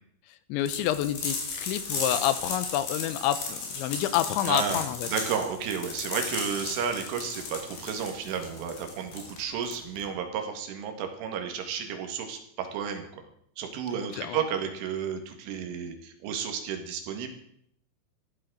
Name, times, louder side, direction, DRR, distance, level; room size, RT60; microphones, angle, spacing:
voice 1, 0.5-5.1 14.2-14.4, left 12 dB, 85° left, 14 dB, 3.2 m, -28 dB
sound 1, 0.7-10.1, left 4 dB, 55° left, 5.0 m, -35 dB
voice 2, 4.5-13.2 13.6-17.3, right 7 dB, 85° right, 5 dB, 4.5 m, -32 dB
14.5 x 11.5 x 6.4 m, 0.68 s
omnidirectional pair, 5.4 m